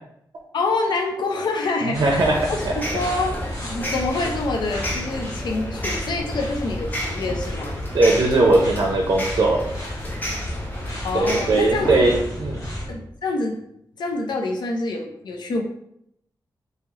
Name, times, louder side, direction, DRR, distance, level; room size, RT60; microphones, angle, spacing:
voice 1, 0.5-3.3 3.6-7.8 11.0-12.0 12.9-13.6 14.0-15.6, left 3 dB, 70° left, 2 dB, 0.5 m, -26 dB
sound 1, 1.9-12.9, equal, 45° left, 1.1 m, -32 dB
voice 2, 1.9-2.7 7.9-9.6 11.1-12.6, right 2 dB, 55° right, 1 dB, 0.5 m, -19 dB
sound 2, 2.0-12.2, equal, 25° left, 0.6 m, -33 dB
3.1 x 2.8 x 3.6 m, 0.74 s
wide cardioid pair, 165°, 8 cm